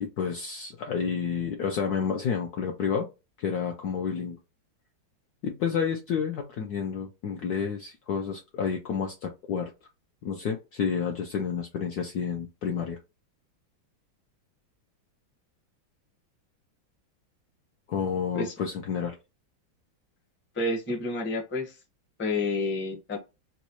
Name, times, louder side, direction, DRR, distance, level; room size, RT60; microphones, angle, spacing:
voice 1, 0.0-3.1 3.4-4.4 5.4-9.7 10.2-13.0 17.9-19.2, left 6 dB, 70° left, 2 dB, 0.9 m, -30 dB
voice 2, 20.5-21.8 22.2-23.2, left 2 dB, 15° left, -2 dB, 0.4 m, -29 dB
4.0 x 2.3 x 2.9 m, 0.26 s
omnidirectional pair, 2.2 m